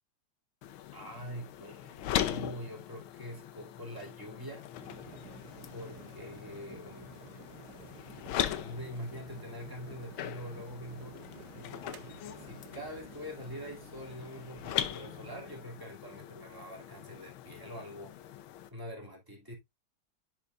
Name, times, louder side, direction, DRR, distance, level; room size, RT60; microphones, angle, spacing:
sound 1, 0.6-18.7, left 11 dB, 85° left, 1.6 m, -40 dB
voice 1, 0.9-4.7 5.7-7.2 8.4-18.2 18.7-19.5, equal, 10° right, 2.5 m, -44 dB
sound 2, 4.8-15.7, right 11 dB, 70° right, 1.0 m, -53 dB
10.5 x 4.6 x 2.5 m
omnidirectional pair, 2.2 m